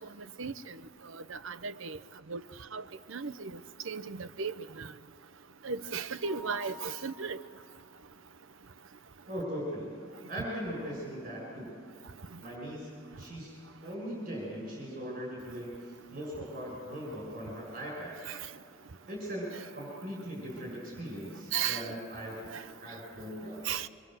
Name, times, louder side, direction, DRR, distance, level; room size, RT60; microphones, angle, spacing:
voice 1, 1.3-2.0 2.3-2.4 2.7-2.8 3.1-3.5 3.9-4.9 5.6-7.4 21.5-21.8 23.7-23.9, right 6 dB, 80° right, 0.8 m, -35 dB
Mallet percussion, 6.2-8.0, left 5 dB, 5° right, 6.0 m, -50 dB
voice 2, 9.3-9.9 10.3-11.7 12.4-12.9 13.2-13.5 13.8-15.7 16.1-18.2 19.1-22.4 22.8-23.6, equal, 40° right, 7.1 m, -39 dB
25.5 x 23.5 x 7.9 m
head